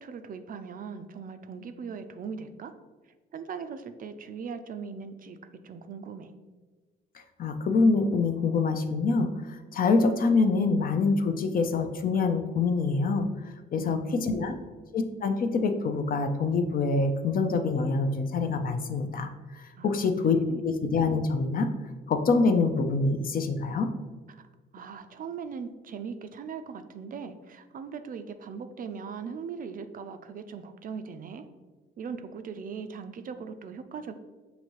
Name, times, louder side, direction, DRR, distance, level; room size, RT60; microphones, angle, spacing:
voice 1, 0.0-2.7 3.3-5.4 5.6-6.3 13.8-14.4 19.8-20.7 24.3-24.5 24.7-31.4 32.0-34.2, right 6 dB, 45° right, 9 dB, 0.4 m, -39 dB
voice 2, 7.4-13.3 13.7-14.5 14.9-20.4 20.6-21.7 22.1-23.9, left 4 dB, 45° left, 7 dB, 0.5 m, -25 dB
5.7 x 2.7 x 3.0 m, 1.3 s
cardioid pair, 90°, 20 cm